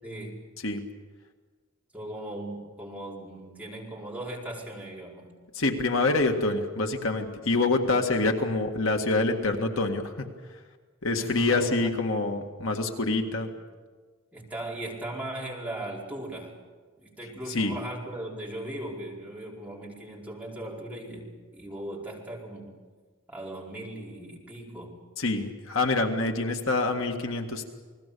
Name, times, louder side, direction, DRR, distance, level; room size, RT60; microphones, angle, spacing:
voice 1, 0.0-0.4 1.9-5.3 7.8-8.1 11.2-11.9 12.4-12.5 14.3-16.6 17.0-22.7 23.3-24.9, right 1 dB, 5° right, -4 dB, 4.6 m, -38 dB
voice 2, 5.5-10.1 11.0-13.5 17.5-17.8 25.2-27.6, left 3 dB, 70° left, 4 dB, 1.9 m, -26 dB
29.0 x 20.0 x 6.9 m, 1.4 s
head